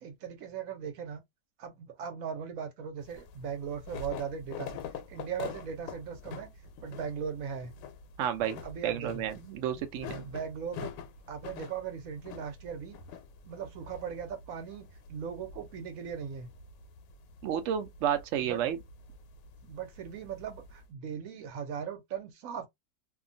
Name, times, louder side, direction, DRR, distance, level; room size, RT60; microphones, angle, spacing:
voice 1, 0.0-1.2 1.6-4.8 5.1-6.5 6.8-7.7 8.6-9.3 10.2-10.9 11.3-13.0 13.4-16.5 18.4-18.6 19.6-22.7, right 7 dB, 60° right, 1.0 m, -38 dB
sound 1, 3.0-20.9, left 6 dB, 90° left, 1.2 m, -46 dB
voice 2, 8.2-10.2 17.4-18.8, right 9 dB, 80° right, 0.6 m, -31 dB
2.8 x 2.3 x 2.5 m
omnidirectional pair, 1.8 m